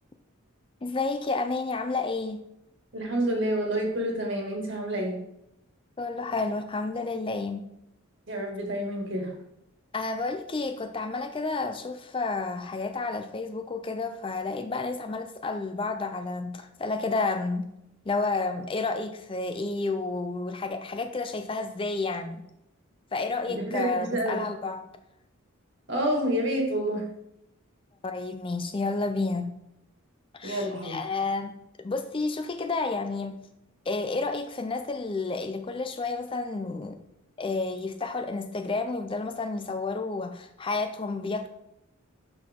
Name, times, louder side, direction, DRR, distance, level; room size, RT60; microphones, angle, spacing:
voice 1, 0.8-2.4 6.0-7.6 9.9-17.7 18.1-22.4 23.1-24.8 28.0-29.6 30.3-31.5 31.8-33.4 33.9-37.0 37.4-41.5, left 3 dB, 25° left, 7 dB, 0.4 m, -30 dB
voice 2, 2.9-5.2 8.3-9.3 23.5-24.4 25.9-27.1 30.4-31.0, right 1 dB, 60° right, 0 dB, 1.9 m, -28 dB
6.8 x 6.1 x 3.6 m, 0.80 s
head